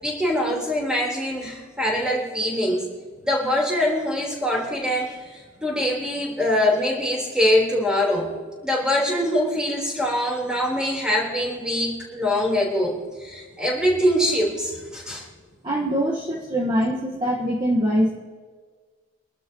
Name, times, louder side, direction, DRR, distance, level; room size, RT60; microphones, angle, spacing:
voice 1, 0.0-2.9 3.2-8.3 8.6-15.3, left 1 dB, 5° right, -2 dB, 3.8 m, -23 dB
voice 2, 15.6-18.2, equal, 20° right, -3 dB, 1.4 m, -23 dB
25.5 x 12.5 x 3.0 m, 1.5 s
head